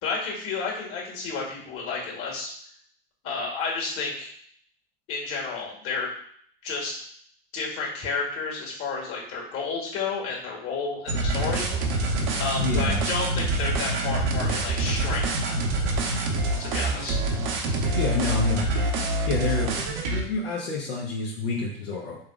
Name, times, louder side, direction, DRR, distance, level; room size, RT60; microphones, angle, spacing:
voice 1, 0.0-2.5 3.2-4.3 5.1-6.1 6.6-7.0 7.5-11.7 12.4-15.4 16.6-17.2, left 4 dB, 45° left, -1 dB, 1.8 m, -31 dB
sound 1, 11.1-20.2, right 2 dB, 60° right, 1.0 m, -26 dB
voice 2, 12.6-13.0 18.0-18.6 19.3-19.8 20.0-22.2, left 3 dB, 75° left, -5 dB, 1.1 m, -28 dB
5.9 x 3.7 x 2.4 m, 0.62 s
hypercardioid pair, 80°, 31 cm